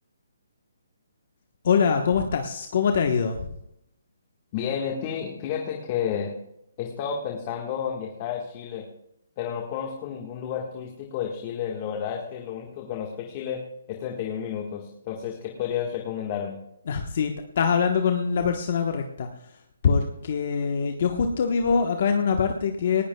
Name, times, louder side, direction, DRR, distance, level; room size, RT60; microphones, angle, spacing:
voice 1, 1.6-3.5 16.9-19.5 19.8-23.0, left 6 dB, 50° left, 4 dB, 1.1 m, -24 dB
voice 2, 4.5-6.3 6.8-8.8 9.4-13.6 13.9-16.6, left 8 dB, 30° left, 1 dB, 1.6 m, -31 dB
18.5 x 16.5 x 2.3 m, 0.79 s
hypercardioid pair, 160°, 0 cm